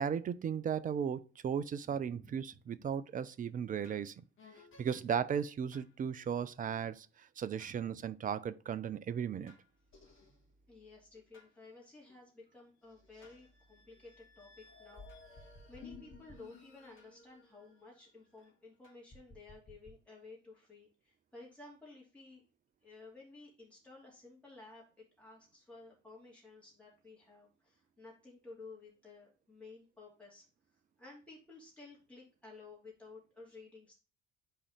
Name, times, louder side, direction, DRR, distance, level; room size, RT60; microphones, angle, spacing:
voice 1, 0.0-4.1 4.8-9.5, right 7 dB, 25° right, 0.5 m, -36 dB
voice 2, 1.8-2.4 2.8-2.9 7.7-8.0 10.7-22.4 22.8-30.4 30.7-33.9, left 3 dB, 5° left, 2.6 m, -55 dB
sound 1, 3.8-4.0 4.4-5.0 5.7-5.9 7.6-7.8 9.5-11.5 12.1-12.2 12.8-18.5 18.8-19.9, left 3 dB, 40° left, 2.3 m, -57 dB
5.6 x 4.1 x 5.0 m
figure-of-eight pair, 55°, 34 cm